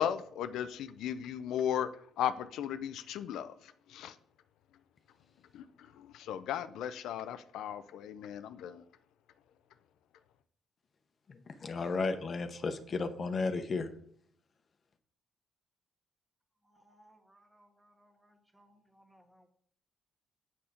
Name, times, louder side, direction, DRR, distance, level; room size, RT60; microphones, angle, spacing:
voice 1, 0.0-1.9 2.2-4.2 5.5-5.6 6.0-8.8, left 9 dB, 85° left, 12 dB, 0.4 m, -36 dB
voice 2, 11.6-13.9, left 4 dB, 45° left, 8 dB, 0.9 m, -33 dB
voice 3, 16.6-19.5, right 1 dB, 10° right, 5 dB, 1.5 m, -65 dB
7.3 x 7.0 x 5.0 m, 0.63 s
cardioid pair, 90°, 0 cm